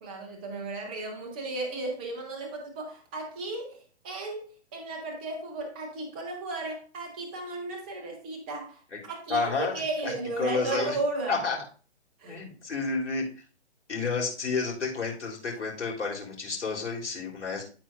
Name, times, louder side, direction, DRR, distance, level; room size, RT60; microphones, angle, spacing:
voice 1, 0.0-3.8 4.0-11.4 12.2-12.4, right 2 dB, 10° right, 2 dB, 0.4 m, -35 dB
voice 2, 9.3-9.7 10.0-10.1 10.4-11.0 11.3-11.6 12.2-13.3 13.9-17.6, left 4 dB, 85° left, -2 dB, 3.6 m, -30 dB
12.5 x 4.6 x 2.5 m, 0.39 s
hypercardioid pair, 145°, 35 cm